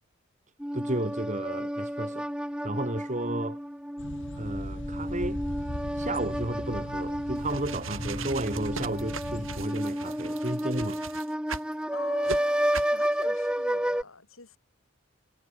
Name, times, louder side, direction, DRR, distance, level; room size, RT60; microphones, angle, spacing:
sound 1, 0.6-14.0, equal, 5° right, 2.2 m, -31 dB
voice 1, 0.7-2.3 2.6-3.6 4.4-5.4 5.9-11.0, right 1 dB, 35° right, 4.5 m, -33 dB
sound 2, 4.0-9.7, equal, 60° left, 4.7 m, -39 dB
sound 3, 7.4-11.7 12.2-12.4 12.7-13.0, right 4 dB, 70° right, 6.3 m, -38 dB
voice 2, 11.9-14.6, left 3 dB, 75° left, 5.4 m, -44 dB
head